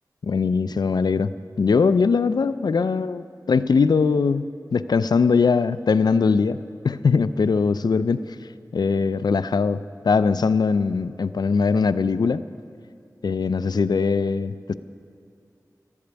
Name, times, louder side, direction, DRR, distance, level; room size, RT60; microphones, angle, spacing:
voice 1, 0.2-1.3 1.6-6.6 6.8-8.2 8.7-12.4 13.2-14.7, left 5 dB, 80° left, 14 dB, 0.3 m, -21 dB
12.5 x 8.5 x 8.0 m, 2.4 s
wide cardioid pair, 75°, 7 cm